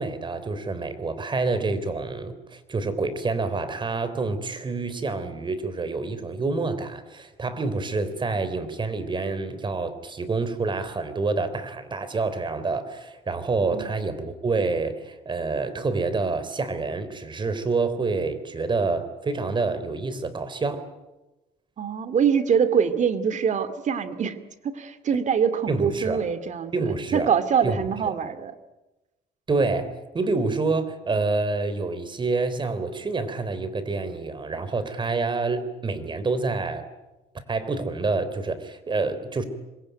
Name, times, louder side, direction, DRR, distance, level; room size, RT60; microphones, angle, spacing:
voice 1, 0.0-20.9 25.7-26.2 26.7-27.3 27.6-27.8 29.5-36.9 37.5-39.4, right 3 dB, 30° right, 12 dB, 3.6 m, -27 dB
voice 2, 21.8-24.4 24.6-28.5, right 7 dB, 45° right, 11 dB, 2.4 m, -24 dB
26.0 x 22.5 x 9.2 m, 1.0 s
cardioid pair, 110°, 17 cm